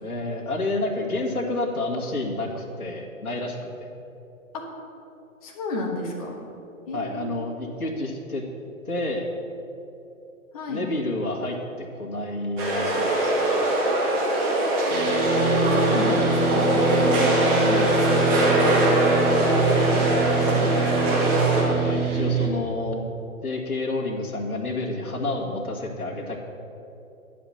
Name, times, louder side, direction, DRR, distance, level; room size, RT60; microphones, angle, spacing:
voice 1, 0.0-3.9 6.9-8.4 8.9-9.3 10.7-13.6 15.6-15.9 21.6-23.0 23.4-26.4, left 2 dB, 85° left, -3 dB, 2.0 m, -29 dB
voice 2, 5.4-6.4 6.9-7.6 10.5-10.9 14.8-14.9 15.8-19.2 19.4-20.1 20.3-21.1, left 2 dB, 25° left, -1 dB, 1.1 m, -32 dB
sound 1, 12.6-21.6, right 1 dB, 25° right, 1.9 m, -22 dB
sound 2, 14.9-22.5, right 4 dB, 75° right, 1.9 m, -24 dB
10.5 x 5.1 x 7.6 m, 2.8 s
figure-of-eight pair, 135°, 43 cm